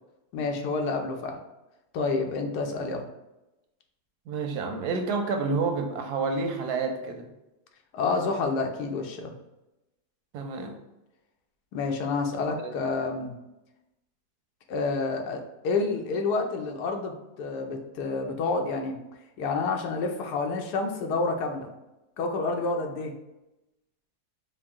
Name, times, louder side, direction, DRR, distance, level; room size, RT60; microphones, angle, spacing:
voice 1, 0.3-1.4 1.9-3.0 7.9-9.4 11.7-13.4 14.7-19.0 19.4-21.7 22.2-23.1, left 3 dB, 85° left, 3 dB, 1.2 m, -29 dB
voice 2, 4.3-7.3 10.3-10.8 12.6-12.7, right 4 dB, 85° right, 5 dB, 1.1 m, -29 dB
4.4 x 2.0 x 3.5 m, 0.96 s
omnidirectional pair, 1.7 m